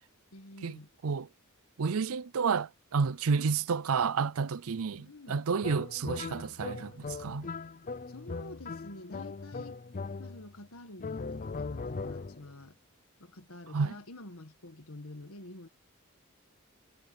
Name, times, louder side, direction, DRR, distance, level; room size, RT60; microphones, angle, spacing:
voice 1, 0.3-0.9 5.0-5.5 8.1-9.8 10.2-12.8 13.2-15.7, left 2 dB, 85° left, 1.7 m, -48 dB
voice 2, 1.8-7.5 13.7-13.9, right 5 dB, 85° right, 0.5 m, -30 dB
sound 1, 5.6-10.6 11.0-12.5, left 4 dB, 40° left, 0.5 m, -39 dB
head